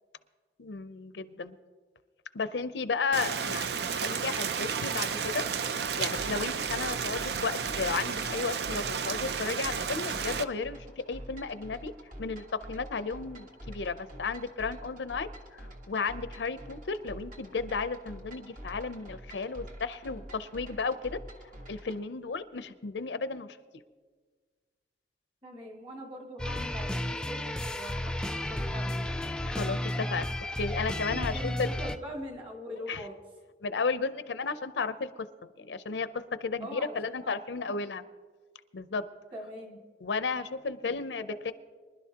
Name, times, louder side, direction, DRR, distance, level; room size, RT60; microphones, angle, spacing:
voice 1, 0.6-1.6 2.3-5.4 6.0-11.9 12.2-15.3 15.6-21.2 21.7-23.6 29.4-31.8 32.9-33.0 33.6-35.1 35.4-38.0 38.7-39.0 40.0-41.5, left 4 dB, 85° left, 12 dB, 0.6 m, -34 dB
Rain, 3.1-10.4, right 6 dB, 65° right, 0.5 m, -32 dB
sound 1, 6.2-22.0, equal, 50° right, 1.4 m, -47 dB
voice 2, 25.4-29.1 30.8-33.2 36.6-37.4 37.7-37.8 39.3-39.8 40.8-40.9 41.2-41.5, equal, 30° right, 0 dB, 2.3 m, -43 dB
sound 2, 26.4-32.0, left 1 dB, 5° left, 0.3 m, -33 dB
24.0 x 11.5 x 2.9 m, 1.5 s
head